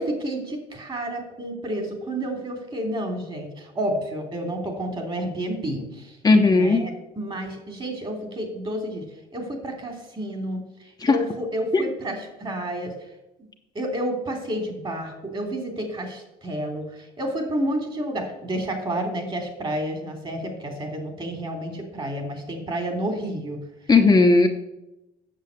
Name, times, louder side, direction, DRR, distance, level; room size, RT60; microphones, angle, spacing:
voice 1, 0.0-6.2 6.5-9.0 9.3-12.9 13.7-23.6, right 1 dB, 30° right, 4 dB, 3.3 m, -30 dB
voice 2, 6.2-6.8 11.0-11.2 11.7-11.9 23.9-24.5, left 3 dB, 20° left, 3 dB, 1.0 m, -16 dB
8.8 x 7.2 x 8.4 m, 0.90 s
cardioid pair, 110°, 17 cm